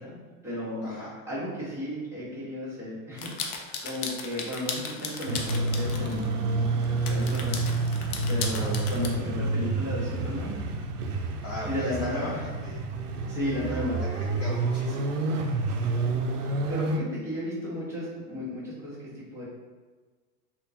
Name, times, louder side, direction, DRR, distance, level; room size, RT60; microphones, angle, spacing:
voice 1, 0.0-1.0 1.3-7.6 8.3-10.6 11.7-12.4 13.3-14.0 16.7-19.0 19.3-19.4, left 1 dB, 5° right, -10 dB, 1.4 m, -34 dB
voice 2, 0.8-1.1 8.5-8.7 11.4-12.8 13.9-15.7, left 1 dB, 35° left, -5 dB, 0.6 m, -40 dB
sound 1, 3.2-6.2 6.8-9.1, left 5 dB, 75° left, 0.7 m, -36 dB
sound 2, 5.3-17.0, right 3 dB, 90° right, 0.6 m, -29 dB
3.5 x 2.5 x 2.8 m, 1.4 s
supercardioid pair, 125°, 44 cm